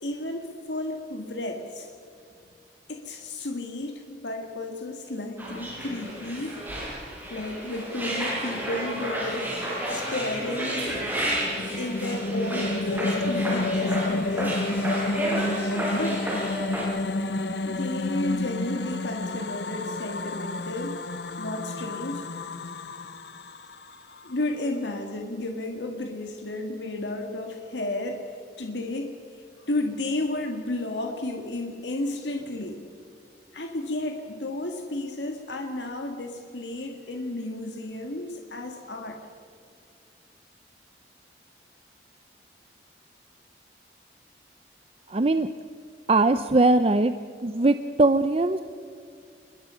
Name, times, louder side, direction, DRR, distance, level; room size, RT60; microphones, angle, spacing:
voice 1, 0.0-1.9 2.9-6.6 7.3-9.5 9.9-14.6 15.9-16.2 16.9-17.1 17.6-21.0 21.4-22.3 24.2-32.8 33.5-39.2, left 2 dB, 90° left, 4 dB, 1.7 m, -33 dB
sound 1, 5.4-16.8, right 1 dB, 10° right, 6.9 m, -31 dB
sound 2, 11.1-24.4, left 2 dB, 75° left, 1.1 m, -30 dB
voice 2, 45.1-45.5 46.1-47.1 47.4-48.6, right 2 dB, 35° right, 10 dB, 0.6 m, -20 dB
27.5 x 22.0 x 5.6 m, 2.3 s
head